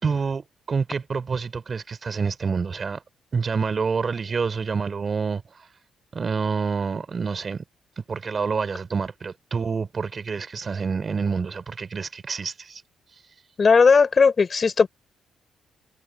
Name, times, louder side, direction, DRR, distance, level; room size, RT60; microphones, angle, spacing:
voice 1, 0.0-3.0 3.3-5.4 6.1-7.6 8.0-12.8, right 5 dB, 40° right, 4.8 m, -27 dB
voice 2, 13.6-14.9, left 5 dB, 35° left, 5.7 m, -17 dB
cardioid pair, 90°, 0 cm